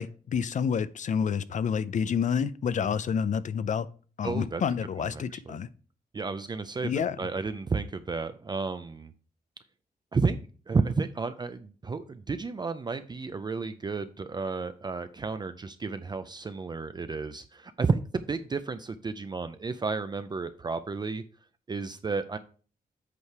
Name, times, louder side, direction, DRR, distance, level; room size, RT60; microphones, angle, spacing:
voice 1, 0.0-3.9 4.2-5.7 6.8-7.2, left 7 dB, 55° left, 0.5 m, -28 dB
voice 2, 4.2-4.6 5.0-5.6 6.1-9.1 10.1-10.4 10.7-21.2 21.7-22.4, right 4 dB, 30° right, 0.4 m, -32 dB
8.2 x 4.9 x 4.7 m
wide cardioid pair, 135°, 15 cm